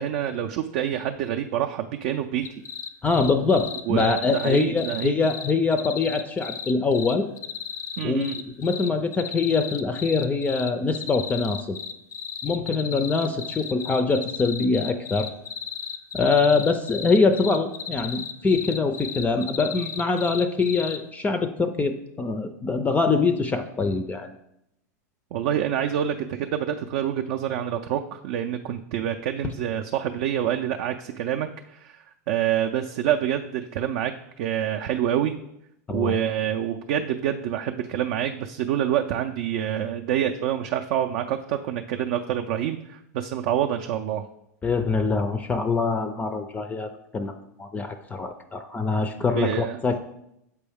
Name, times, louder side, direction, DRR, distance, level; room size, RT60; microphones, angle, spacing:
voice 1, 0.0-2.5 3.9-5.1 8.0-8.3 25.3-32.0 32.3-34.1 34.4-35.3 35.9-44.3 49.4-49.8, right 10 dB, 55° right, 4 dB, 0.4 m, -27 dB
sound 1, 2.4-21.0, left 8 dB, 85° left, 0.5 m, -35 dB
voice 2, 3.0-7.3 8.0-11.8 12.4-15.3 16.1-24.3 35.9-36.2 44.6-47.3 47.6-50.0, left 4 dB, 15° left, 8 dB, 0.4 m, -24 dB
6.9 x 4.5 x 3.5 m, 0.82 s
hypercardioid pair, 110°, 9 cm